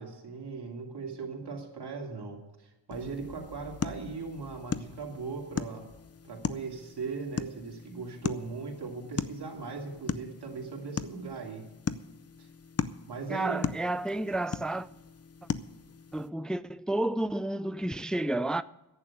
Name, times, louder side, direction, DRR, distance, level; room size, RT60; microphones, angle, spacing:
voice 1, 0.0-5.9 6.2-11.7 12.4-12.5 13.1-13.7, right 4 dB, 75° right, 2.8 m, -39 dB
sound 1, 2.9-16.3, left 6 dB, 40° left, 0.6 m, -38 dB
voice 2, 13.3-14.9 16.1-18.6, right 1 dB, ahead, 0.3 m, -31 dB
11.0 x 8.7 x 8.5 m
cardioid pair, 70°, 40 cm